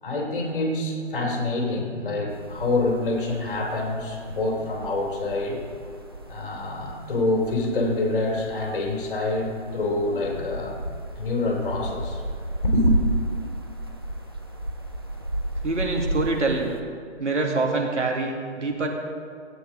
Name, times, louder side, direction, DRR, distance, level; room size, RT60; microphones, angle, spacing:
voice 1, 0.0-5.6 6.3-10.8 11.2-12.2 12.6-13.0, left 2 dB, 45° left, -1 dB, 3.0 m, -26 dB
sound 1, 2.3-16.8, right 1 dB, 20° right, 0.4 m, -32 dB
voice 2, 15.6-16.8 17.2-18.9, right 3 dB, 75° right, 1 dB, 2.2 m, -25 dB
16.0 x 9.0 x 3.9 m, 2.2 s
figure-of-eight pair, 150°, 36 cm